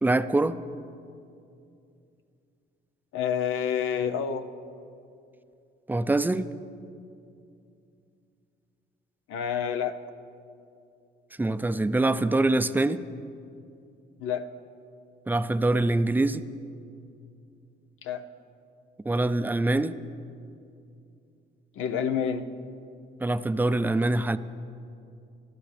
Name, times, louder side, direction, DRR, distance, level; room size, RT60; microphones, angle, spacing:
voice 1, 0.0-0.6 5.9-6.5 11.4-13.0 15.3-16.4 19.1-20.0 23.2-24.4, right 2 dB, 10° right, 12 dB, 0.5 m, -24 dB
voice 2, 3.1-4.5 9.3-10.0 14.2-14.5 18.0-18.2 21.8-22.5, left 8 dB, 85° left, 8 dB, 0.8 m, -28 dB
27.0 x 12.5 x 3.4 m, 2.5 s
cardioid pair, 90°, 20 cm